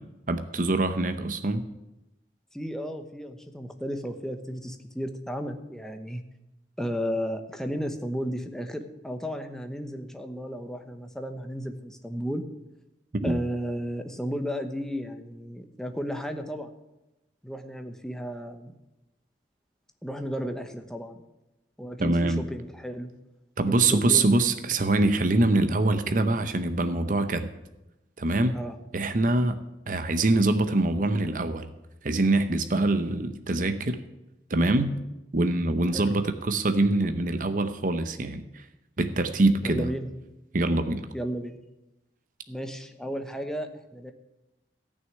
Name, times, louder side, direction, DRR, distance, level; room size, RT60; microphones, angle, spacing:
voice 1, 0.3-1.6 13.2-13.4 22.0-22.4 23.6-27.5 28.2-28.5 28.9-29.6 29.9-31.7 32.0-34.0 34.5-34.9 35.3-38.6 39.0-39.9 40.5-41.1, right 2 dB, 50° right, 9 dB, 0.8 m, -24 dB
voice 2, 2.5-6.2 6.8-12.4 13.2-16.7 17.4-18.7 20.0-21.2 21.8-23.1 23.7-24.4 28.5-28.8 35.9-36.1 39.6-40.1 41.1-41.6 42.5-44.1, equal, 5° left, 6 dB, 1.0 m, -34 dB
14.5 x 6.4 x 9.3 m, 0.96 s
head